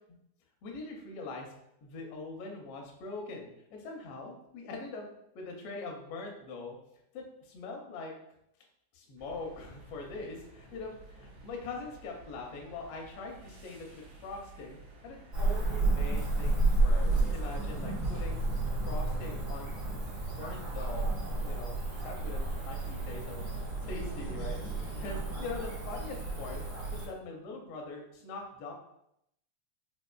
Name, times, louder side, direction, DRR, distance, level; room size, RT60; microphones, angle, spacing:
voice 1, 0.6-1.5 1.8-5.1 5.3-6.8 7.1-8.1 8.9-14.8 15.0-18.4 18.8-19.8 20.3-21.1 21.4-23.4 23.9-26.6 26.9-28.7, left 3 dB, 85° left, 1 dB, 1.3 m, -42 dB
sound 1, 9.2-26.9, right 2 dB, 80° right, 2.3 m, -53 dB
Cricket / Motor vehicle (road), 15.3-27.1, right 2 dB, 55° right, 1.1 m, -31 dB
5.2 x 2.5 x 2.3 m, 0.78 s
omnidirectional pair, 3.5 m